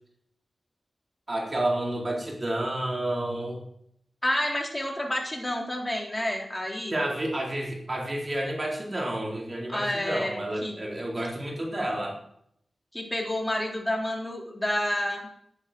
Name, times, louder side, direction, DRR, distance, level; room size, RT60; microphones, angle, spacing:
voice 1, 1.3-3.6 6.9-12.2, right 1 dB, 35° right, -1 dB, 4.0 m, -30 dB
voice 2, 4.2-7.0 9.7-10.8 12.9-15.2, left 1 dB, 15° left, -1 dB, 3.8 m, -29 dB
10.5 x 10.0 x 7.9 m, 0.72 s
wide cardioid pair, 80°, 0 cm